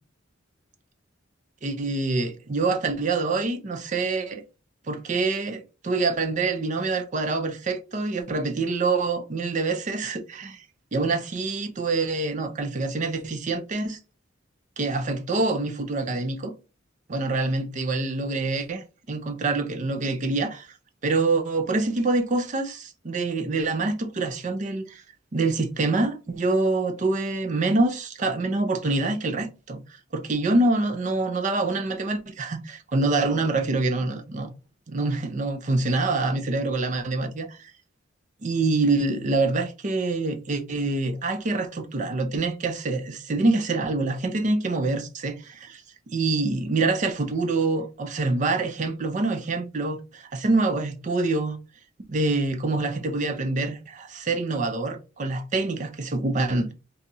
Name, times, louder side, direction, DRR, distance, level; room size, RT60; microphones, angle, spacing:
voice 1, 1.6-4.4 4.9-10.6 10.9-14.0 14.8-16.5 17.1-20.8 21.0-25.0 25.3-34.5 34.9-37.7 38.4-51.6 52.1-56.7, right 3 dB, 40° right, 0.5 m, -26 dB
2.7 x 2.4 x 4.0 m
head